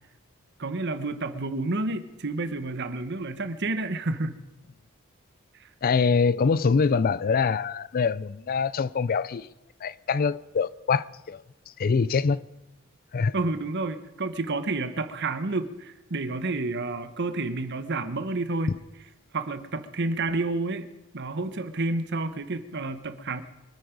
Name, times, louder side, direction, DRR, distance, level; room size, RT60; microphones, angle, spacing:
voice 1, 0.6-4.4 13.3-18.7 19.3-20.9 21.1-23.4, right 2 dB, 55° right, 1.1 m, -30 dB
voice 2, 5.8-9.5 9.8-11.4 11.8-12.4 13.1-13.3, left 5 dB, 45° left, 0.4 m, -24 dB
24.0 x 9.3 x 5.2 m
head